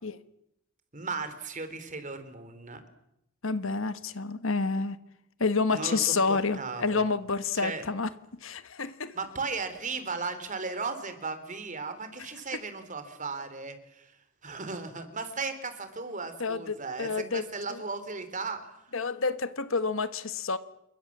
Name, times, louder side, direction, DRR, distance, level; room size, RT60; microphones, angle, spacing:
voice 1, 0.9-2.8 5.7-7.1 7.6-7.9 9.1-14.1 14.4-18.6, right 4 dB, 35° right, 3.5 m, -36 dB
voice 2, 3.4-5.0 5.4-8.1 8.4-9.2 16.4-17.8 18.9-20.6, left 4 dB, 65° left, 1.3 m, -29 dB
28.5 x 23.0 x 7.4 m
head